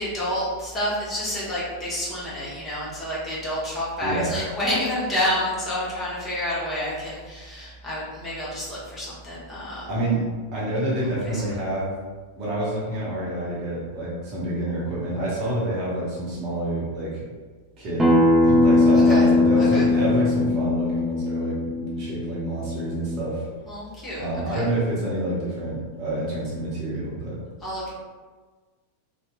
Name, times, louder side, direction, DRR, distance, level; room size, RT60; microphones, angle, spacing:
voice 1, 0.0-9.9 11.2-11.4 19.1-19.2 19.6-19.8 23.7-24.7 27.6-27.9, left 1 dB, 15° left, -9 dB, 1.0 m, -29 dB
voice 2, 4.0-4.3 9.9-11.9 12.4-17.2 17.8-23.5 24.2-27.4, right 1 dB, 40° right, -6 dB, 0.8 m, -28 dB
Acoustic guitar, 18.0-23.2, left 2 dB, 10° right, 0.5 m, -20 dB
2.7 x 2.4 x 2.2 m, 1.4 s
figure-of-eight pair, 90°, 0 cm